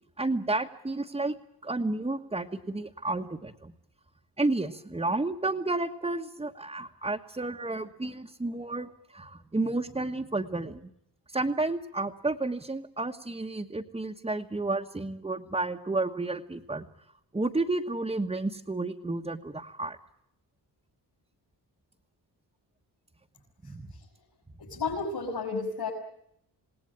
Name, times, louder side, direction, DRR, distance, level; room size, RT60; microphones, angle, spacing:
voice 1, 0.2-1.3 1.6-3.7 4.4-10.9 11.3-16.9 17.3-20.0 23.6-23.9, right 2 dB, 15° right, 0 dB, 1.3 m, -31 dB
voice 2, 24.6-25.9, left 4 dB, 65° left, 0 dB, 7.0 m, -32 dB
28.5 x 19.0 x 9.1 m, 0.78 s
wide cardioid pair, 130°, 41 cm